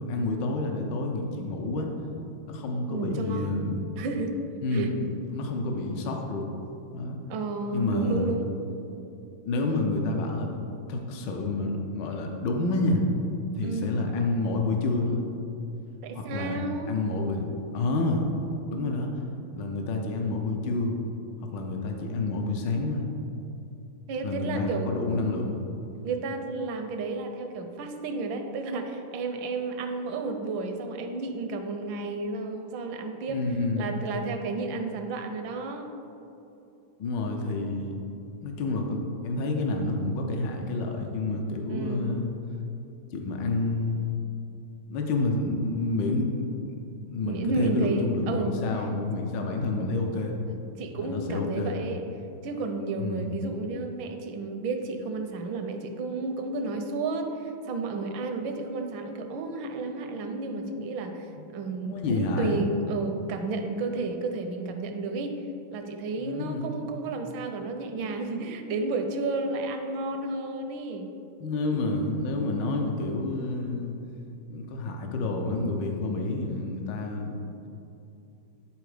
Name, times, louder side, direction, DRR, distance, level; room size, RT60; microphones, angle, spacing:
voice 1, 0.0-1.9 2.5-3.8 4.6-5.0 5.3-6.5 6.9-7.2 7.7-8.3 9.4-10.5 10.9-13.0 13.5-15.2 16.1-16.6 16.9-17.5 17.7-18.3 18.7-19.1 19.6-21.0 21.5-23.0 24.2-25.6 33.3-33.9 37.0-38.0 38.4-42.3 43.1-44.1 44.9-46.5 47.1-50.3 51.0-51.7 53.0-53.3 61.4-61.5 61.8-62.6 66.2-66.7 71.4-74.0 74.5-77.4, left 2 dB, 70° left, 2 dB, 1.4 m, -29 dB
voice 2, 2.9-3.6 4.0-4.4 4.7-4.9 7.3-8.5 13.6-14.0 16.0-16.9 24.1-25.0 26.0-33.4 33.8-35.9 41.7-42.1 47.2-48.6 50.5-52.0 52.4-65.5 65.7-71.1, right 3 dB, 75° right, 5 dB, 1.4 m, -32 dB
10.5 x 4.1 x 4.9 m, 2.8 s
omnidirectional pair, 2.1 m